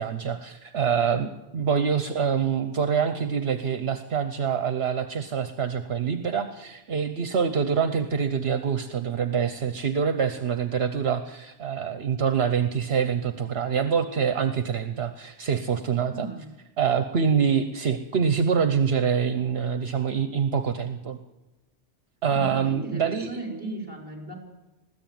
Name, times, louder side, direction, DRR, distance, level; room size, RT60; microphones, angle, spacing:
voice 1, 0.0-16.3 16.8-21.2 22.2-23.4, right 7 dB, 65° right, 9 dB, 1.2 m, -25 dB
voice 2, 16.1-16.5 22.3-24.4, right 2 dB, 20° right, 1 dB, 5.6 m, -36 dB
21.0 x 15.0 x 9.3 m, 1.1 s
omnidirectional pair, 1.2 m